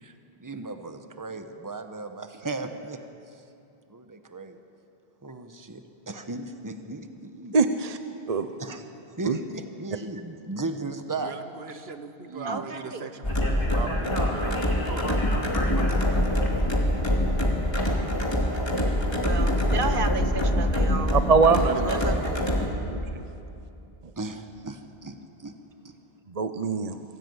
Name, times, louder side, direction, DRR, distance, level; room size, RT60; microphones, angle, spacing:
voice 1, 0.4-3.0 3.9-4.6 5.2-7.6 8.6-8.8 9.2-11.3 11.7-11.9 12.3-12.6 24.2-25.5 25.8-25.9, right 2 dB, 20° right, 7 dB, 1.1 m, -36 dB
voice 2, 7.5-8.0 8.3-8.5 9.2-9.4 21.1-22.0 22.9-23.0 26.3-27.0, right 4 dB, 40° right, 9 dB, 0.8 m, -22 dB
voice 3, 11.2-15.3, right 5 dB, 75° right, 10 dB, 1.2 m, -39 dB
voice 4, 12.5-13.0 19.2-21.2 21.9-22.4, right 4 dB, 55° right, 9 dB, 1.2 m, -32 dB
sound 1, 13.2-22.7, left 1 dB, 25° left, 2.4 m, -24 dB
Speech, 13.3-17.8, left 1 dB, 55° left, 3.0 m, -37 dB
25.0 x 16.0 x 8.0 m, 2.7 s
omnidirectional pair, 1.1 m